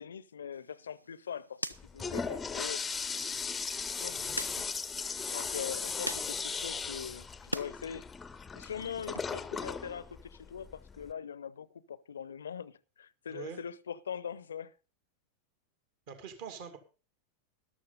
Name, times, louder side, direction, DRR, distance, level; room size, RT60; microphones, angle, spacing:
voice 1, 0.0-1.6 1.9-2.8 4.0-4.2 5.3-8.1 8.6-14.7, left 7 dB, 70° left, 0.6 m, -42 dB
sound 1, 0.5-7.7 8.1-9.2, equal, 85° right, 0.6 m, -45 dB
Toilet flush, 1.7-11.1, left 5 dB, 15° left, 0.6 m, -37 dB
voice 2, 4.1-4.4 13.3-13.6 16.1-16.8, right 7 dB, 50° right, 2.2 m, -44 dB
13.5 x 12.0 x 3.9 m
figure-of-eight pair, 90°, 0 cm